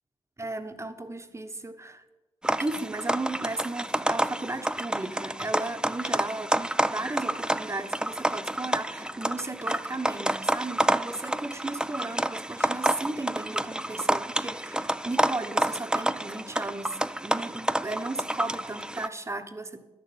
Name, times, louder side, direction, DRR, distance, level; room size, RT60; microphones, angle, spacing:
voice 1, 0.4-2.0 2.6-19.8, right 2 dB, 20° right, 1.3 m, -35 dB
sound 1, 2.4-19.1, right 1 dB, 5° right, 0.5 m, -29 dB
11.0 x 6.7 x 8.8 m
supercardioid pair, 50°, 12 cm